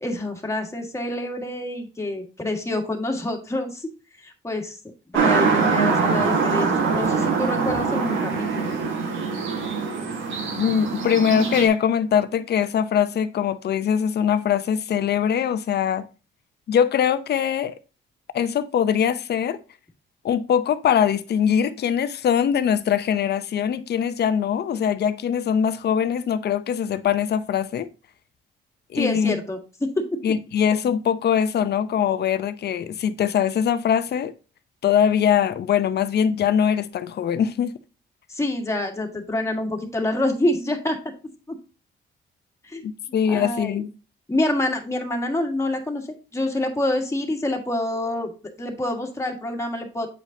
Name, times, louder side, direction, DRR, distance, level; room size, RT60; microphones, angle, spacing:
voice 1, 0.0-3.9 4.2-4.8 5.1-8.8 29.0-29.6 30.0-30.1 38.3-41.0 42.6-42.8 43.3-43.8 44.3-46.1 46.3-48.3 48.6-50.1, left 1 dB, 15° left, 1.7 m, -27 dB
sound 1, 5.1-11.7, right 5 dB, 75° right, 1.5 m, -23 dB
voice 2, 10.5-16.1 16.7-17.8 18.3-19.6 20.2-27.9 28.9-29.4 30.2-34.3 34.8-37.7 42.8-43.9, left 8 dB, 55° left, 0.7 m, -22 dB
8.0 x 5.1 x 2.7 m
cardioid pair, 90°, 20 cm